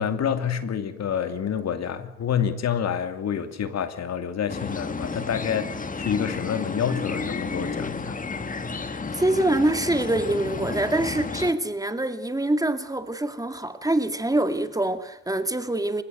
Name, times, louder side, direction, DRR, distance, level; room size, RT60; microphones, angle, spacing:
voice 1, 0.0-8.2, left 8 dB, 60° left, 2.7 m, -28 dB
sound 1, 4.5-11.5, left 4 dB, 25° left, 2.0 m, -32 dB
voice 2, 8.8-16.0, right 1 dB, 10° right, 2.1 m, -25 dB
28.5 x 16.5 x 9.3 m
cardioid pair, 90°, 30 cm